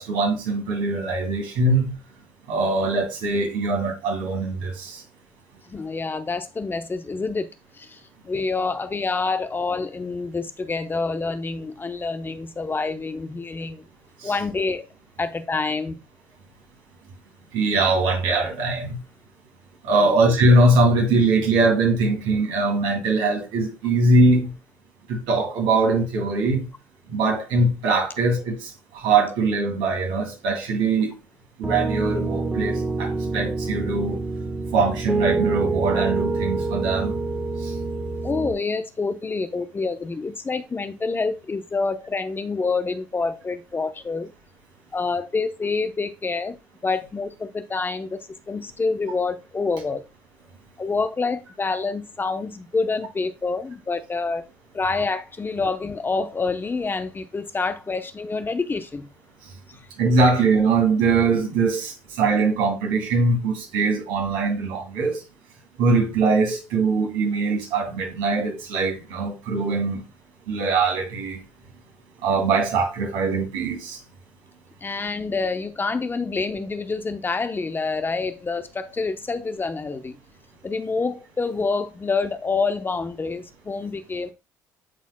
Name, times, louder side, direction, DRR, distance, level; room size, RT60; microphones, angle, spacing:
voice 1, 0.0-1.9 2.5-5.0 14.2-14.3 17.5-19.0 19.8-24.5 25.1-26.7 27.1-31.1 31.6-34.2 34.7-37.2 37.6-37.7 60.0-65.2 65.8-70.0 70.5-71.4 72.2-74.0, right 3 dB, 80° right, 2.5 m, -22 dB
voice 2, 5.7-7.5 7.7-13.8 14.2-14.8 15.2-16.0 20.0-20.2 38.2-44.3 44.9-46.6 46.8-48.2 48.5-50.0 50.8-54.4 54.7-59.1 59.7-59.9 74.8-80.2 80.6-84.3, left 4 dB, 25° left, 0.8 m, -27 dB
Piano, 31.6-38.5, right 3 dB, 15° right, 1.3 m, -26 dB
11.0 x 4.1 x 2.2 m
supercardioid pair, 70°, 8 cm